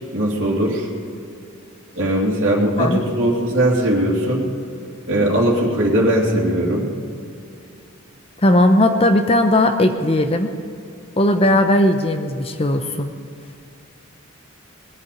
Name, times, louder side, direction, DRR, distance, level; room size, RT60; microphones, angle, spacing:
voice 1, 0.1-0.9 2.0-4.4 5.1-6.9, right 1 dB, 65° right, -4 dB, 2.7 m, -19 dB
voice 2, 8.4-10.5 11.2-13.1, left 1 dB, 25° left, 7 dB, 0.7 m, -17 dB
20.0 x 8.3 x 7.2 m, 2.5 s
head